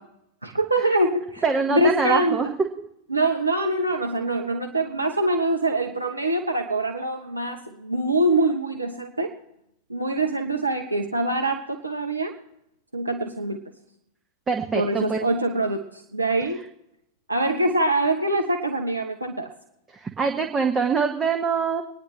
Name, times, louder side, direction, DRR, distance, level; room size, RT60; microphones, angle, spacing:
voice 1, 0.4-2.4 3.1-9.3 9.9-12.3 12.9-13.6 14.7-16.6 17.3-19.5, right 2 dB, 85° right, 3 dB, 0.8 m, -24 dB
voice 2, 1.4-2.5 14.5-15.2 19.9-21.8, right 5 dB, 20° right, 3 dB, 1.1 m, -24 dB
23.5 x 10.0 x 3.1 m, 0.79 s
figure-of-eight pair, 90°, 0 cm